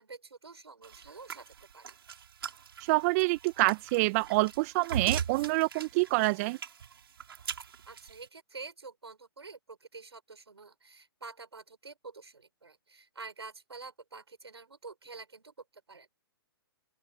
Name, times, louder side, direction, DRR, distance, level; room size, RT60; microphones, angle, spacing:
voice 1, 0.0-1.9 7.9-16.2, right 4 dB, 85° right, 5.9 m, -48 dB
sound 1, 0.8-8.3, right 7 dB, 70° right, 5.7 m, -40 dB
voice 2, 2.9-6.6, right 24 dB, 35° right, 1.2 m, -27 dB
open air
hypercardioid pair, 125°, 13 cm